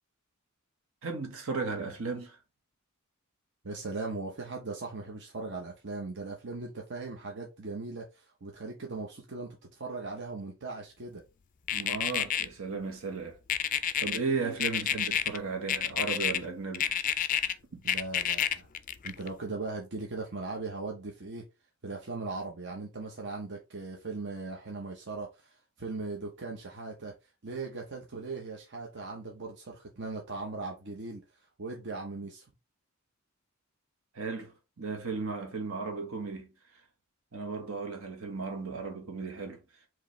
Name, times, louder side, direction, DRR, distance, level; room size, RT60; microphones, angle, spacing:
voice 1, 1.0-2.4 11.7-13.4 13.7-17.0 17.4-17.8 34.1-36.5 37.3-39.6, right 4 dB, 75° right, 1.2 m, -35 dB
voice 2, 3.6-11.2 17.8-18.7 19.0-21.4 21.8-27.1 27.4-31.2 31.6-32.5, right 3 dB, 55° right, 0.9 m, -39 dB
sound 1, 11.7-12.4 13.5-14.2 14.6-15.4 15.7-16.4 16.7-17.5 17.9-19.3, left 9 dB, 40° left, 0.4 m, -28 dB
4.7 x 3.0 x 3.1 m
head